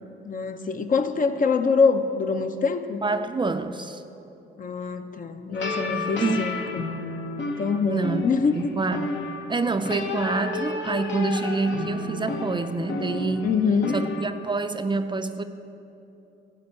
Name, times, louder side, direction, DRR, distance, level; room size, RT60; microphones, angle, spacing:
voice 1, 0.2-3.0 4.6-6.8 7.6-8.7 13.4-14.0, left 5 dB, 45° left, 8 dB, 0.7 m, -24 dB
voice 2, 3.0-4.0 5.9-6.5 7.9-8.2 8.5-13.5 13.9-15.4, right 3 dB, 25° right, 9 dB, 0.4 m, -27 dB
sound 1, 5.5-14.2, left 3 dB, 65° left, 1.1 m, -31 dB
12.5 x 4.4 x 8.4 m, 3.0 s
cardioid pair, 90°, 20 cm